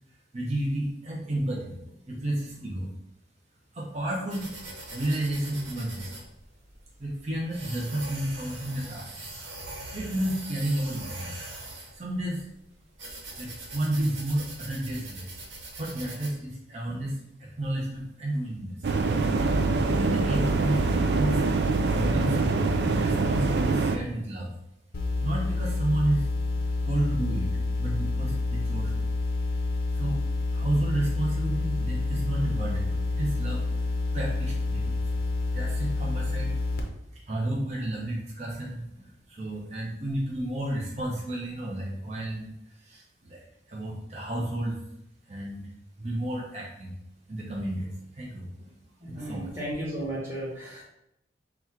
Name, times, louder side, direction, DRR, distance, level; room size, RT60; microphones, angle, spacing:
voice 1, 0.3-1.7 2.1-2.9 3.7-4.5 4.9-6.1 7.0-9.4 9.9-11.4 11.9-12.4 13.4-15.4 15.8-18.9 20.0-21.4 21.8-24.5 25.2-26.3 26.8-27.5 27.8-29.1 29.9-30.2 30.5-33.6 34.1-35.2 35.5-36.5 37.1-43.4 43.7-44.8 45.3-45.7 46.0-46.9 47.3-48.7 49.1-49.5, right 1 dB, 35° right, -4 dB, 0.7 m, -31 dB
sound 1, 4.3-16.3, right 2 dB, 90° right, 1.1 m, -42 dB
sound 2, 18.8-24.0, right 3 dB, 60° right, 0.3 m, -24 dB
sound 3, 24.9-36.8, left 3 dB, 50° left, 0.6 m, -28 dB
voice 2, 49.0-50.8, right 1 dB, 15° right, -8 dB, 1.3 m, -34 dB
4.1 x 2.4 x 4.4 m, 0.82 s
head